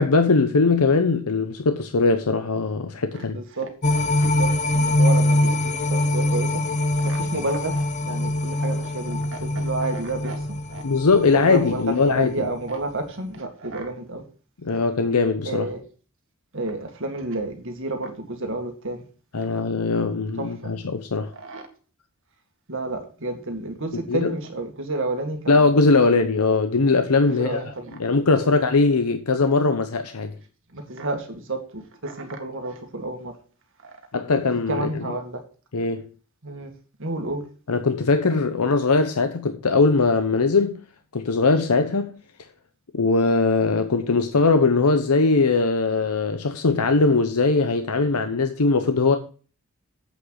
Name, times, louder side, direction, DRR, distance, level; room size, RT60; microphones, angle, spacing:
voice 1, 0.0-3.4 10.8-12.3 14.6-15.7 19.3-21.3 23.9-24.3 25.5-27.6 27.9-30.3 34.1-35.1 35.7-36.0 37.7-40.8 41.1-42.1 42.9-49.2, left 3 dB, 90° left, 0.8 m, -20 dB
voice 2, 3.1-10.4 10.7-10.8 11.3-14.2 15.4-15.8 16.5-19.0 20.4-20.5 21.3-21.7 22.7-26.1 27.3-28.6 30.7-33.3 34.7-35.4 36.4-36.7 37.0-37.4, right 2 dB, 60° right, 2.0 m, -31 dB
sound 1, 3.8-12.2 12.6-12.7, left 1 dB, 30° left, 0.7 m, -23 dB
8.3 x 6.2 x 6.5 m
head